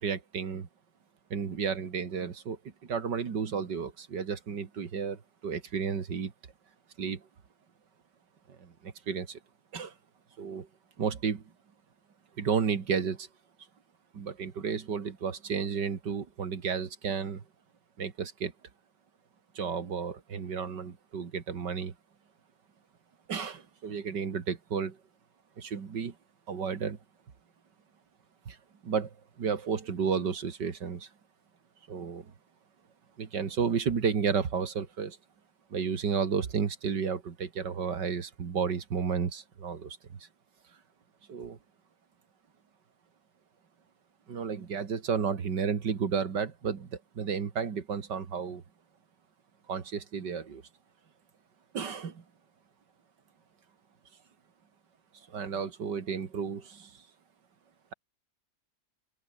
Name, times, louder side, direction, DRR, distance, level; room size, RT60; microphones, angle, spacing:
voice 1, 0.0-0.7 1.3-6.3 7.0-7.2 8.5-9.4 9.7-9.9 10.4-10.7 11.0-11.4 12.4-13.3 14.1-17.4 18.0-18.5 19.6-21.9 23.3-25.0 25.6-26.2 26.5-27.0 28.5-28.6 28.8-31.1 31.9-32.3 33.2-35.2 35.7-40.0 41.3-41.6 44.3-48.6 49.7-50.6 51.7-52.2 55.3-56.9, right 6 dB, 70° right, 2.6 m, -32 dB
open air
omnidirectional pair, 2.0 m